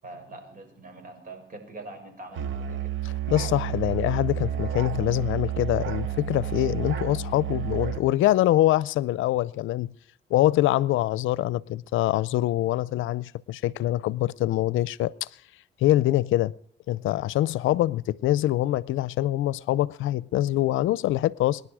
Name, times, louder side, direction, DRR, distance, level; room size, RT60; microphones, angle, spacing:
voice 1, 0.0-2.9, right 2 dB, 45° right, 6.7 m, -43 dB
Musical instrument, 2.3-8.1, right 10 dB, 75° right, 1.7 m, -31 dB
voice 2, 3.0-9.9 10.3-15.1 15.8-16.5 16.9-21.6, left 14 dB, 80° left, 0.6 m, -24 dB
25.5 x 10.5 x 4.9 m
cardioid pair, 90°, 20 cm